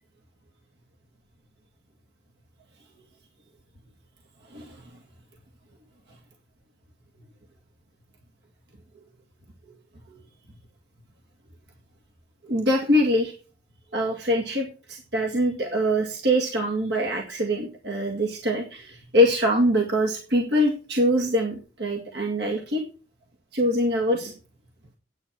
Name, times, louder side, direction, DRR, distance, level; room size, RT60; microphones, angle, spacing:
voice 1, 12.5-13.3 13.9-22.8 23.5-24.3, equal, 65° right, 1 dB, 2.0 m, -24 dB
10.5 x 8.7 x 6.0 m, 0.38 s
head